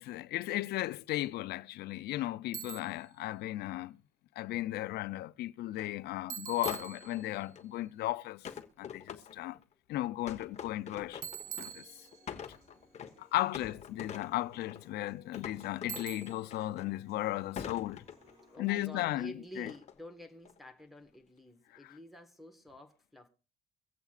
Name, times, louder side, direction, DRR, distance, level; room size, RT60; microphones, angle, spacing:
voice 1, 0.0-4.0 4.4-8.5 8.8-9.6 9.9-11.2 11.6-11.9 13.2-18.0 18.6-19.7, left 15 dB, 75° left, 0.5 m, -35 dB
Bicycle, 2.5-3.1 6.3-7.5 11.2-12.5 15.9-16.6, right 10 dB, 55° right, 0.5 m, -44 dB
sound 1, 5.7-6.0 6.6-7.8 8.4-9.6 10.3-11.8 12.1-13.2 13.5-14.9 15.3-17.2 17.6-18.6 19.7-20.0 20.4-20.8, left 8 dB, 40° left, 1.1 m, -45 dB
Human voice / Piano, 10.6-18.6, left 1 dB, 40° right, 3.4 m, -63 dB
voice 2, 18.5-23.3, equal, ahead, 1.4 m, -49 dB
23.5 x 8.1 x 2.4 m
cardioid pair, 110°, 17 cm